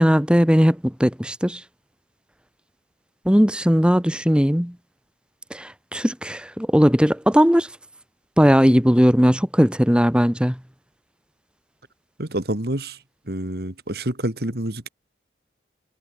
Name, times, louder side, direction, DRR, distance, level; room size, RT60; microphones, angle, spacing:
voice 1, 0.0-1.6 3.3-4.7 5.5-7.7 8.4-10.6, equal, 5° right, 2.4 m, -18 dB
voice 2, 12.2-13.0 13.3-14.9, right 1 dB, 60° right, 2.8 m, -27 dB
head